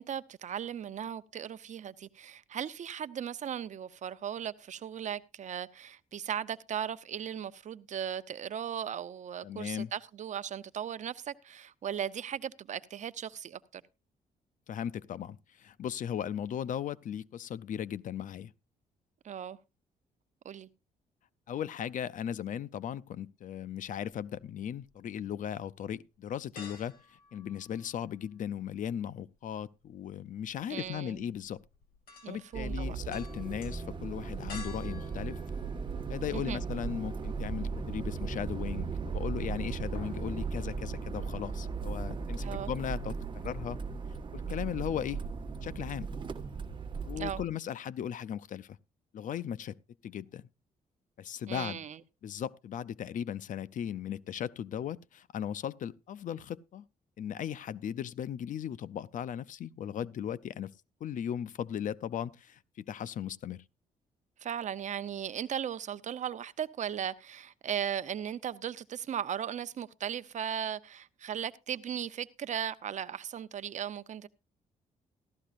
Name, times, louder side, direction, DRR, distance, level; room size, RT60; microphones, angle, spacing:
voice 1, 0.0-13.8 19.2-19.6 20.4-20.7 30.7-31.2 32.2-33.0 36.3-36.6 42.4-42.7 47.2-47.4 51.5-52.0 64.4-74.3, right 9 dB, 55° right, 0.7 m, -37 dB
voice 2, 9.4-9.9 14.7-18.5 21.5-31.6 32.3-35.4 36.1-43.8 44.3-45.2 45.6-46.1 47.1-48.8 49.1-49.8 50.0-50.4 51.2-51.9 52.2-56.8 57.2-60.7 61.0-63.6, left 9 dB, 60° left, 0.5 m, -37 dB
sound 1, 24.8-24.9 25.4-25.5 26.6-28.3 28.5-36.5 36.9-37.0 38.4-39.0 39.3-39.5 39.7-40.3 40.6-40.7, left 4 dB, 85° left, 2.6 m, -52 dB
sound 2, 32.5-47.4, right 5 dB, 30° right, 1.4 m, -37 dB
15.5 x 12.5 x 2.5 m
cardioid pair, 105°, 15 cm